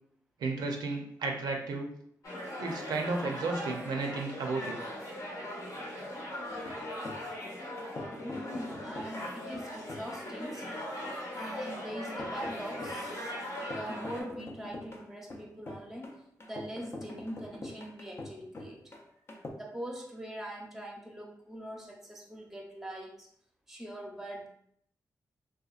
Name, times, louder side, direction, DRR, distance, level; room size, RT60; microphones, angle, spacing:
voice 1, 0.4-1.9 2.6-4.8, right 3 dB, 80° right, 2 dB, 0.4 m, -33 dB
sound 1, 2.2-14.2, left 1 dB, 60° left, 0.9 m, -40 dB
sound 2, 6.5-19.5, left 1 dB, 40° left, 0.5 m, -45 dB
voice 2, 8.2-10.6 11.4-13.3 13.6-16.2 16.4-18.9 19.5-23.3 23.7-24.5, equal, 5° right, 0 dB, 0.7 m, -42 dB
2.8 x 2.2 x 2.4 m, 0.67 s
cardioid pair, 70°, 7 cm